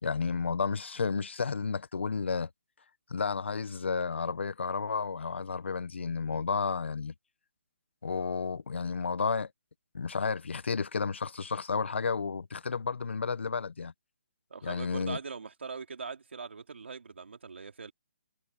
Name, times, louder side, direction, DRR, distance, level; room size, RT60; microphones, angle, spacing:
voice 1, 0.0-2.5 3.1-7.1 8.0-9.5 9.9-13.9 14.6-15.2, left 5 dB, 80° left, 1.1 m, -32 dB
voice 2, 14.5-17.9, right 5 dB, 80° right, 3.1 m, -41 dB
hypercardioid pair, 180°, 6 cm